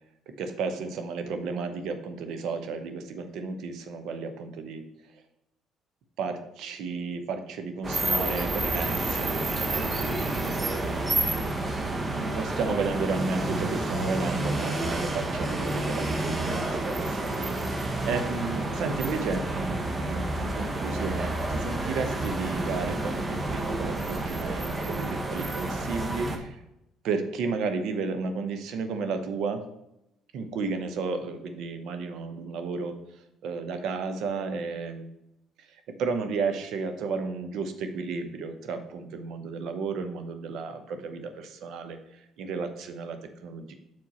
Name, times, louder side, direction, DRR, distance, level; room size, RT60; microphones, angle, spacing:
voice 1, 0.3-4.8 6.2-10.9 11.9-26.6 27.0-29.6 30.3-33.0 33.4-35.1 35.6-43.7, right 4 dB, 65° right, 8 dB, 0.8 m, -33 dB
sound 1, 7.8-26.4, right 2 dB, 30° right, 1.0 m, -29 dB
6.2 x 4.6 x 4.2 m, 0.87 s
hypercardioid pair, 55°, 0 cm